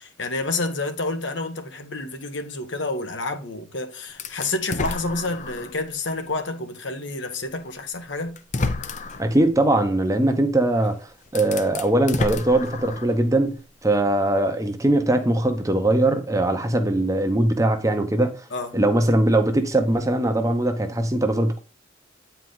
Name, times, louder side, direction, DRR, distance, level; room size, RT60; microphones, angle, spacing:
voice 1, 0.0-8.4 18.5-18.8, left 2 dB, 75° left, 1.3 m, -29 dB
sound 1, 4.2-5.8 6.4-6.5 7.7-7.8 8.4-9.3 10.8-10.9 11.3-13.2, left 3 dB, 40° left, 0.7 m, -30 dB
voice 2, 9.2-11.0 11.3-18.4 18.7-21.6, right 1 dB, 15° right, 0.9 m, -21 dB
9.0 x 4.6 x 3.9 m
head